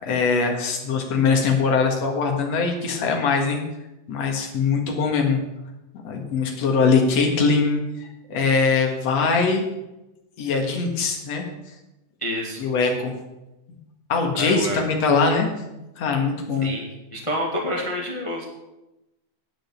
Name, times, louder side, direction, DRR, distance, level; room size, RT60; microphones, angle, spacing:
voice 1, 0.0-3.6 4.1-5.4 6.0-9.7 10.4-11.5 12.6-13.1 14.1-15.5 16.0-16.7, left 4 dB, 60° left, 2 dB, 2.8 m, -22 dB
voice 2, 12.2-12.6 14.3-14.8 16.6-18.5, equal, 15° left, 0 dB, 1.1 m, -28 dB
10.5 x 7.6 x 7.2 m, 0.98 s
omnidirectional pair, 3.5 m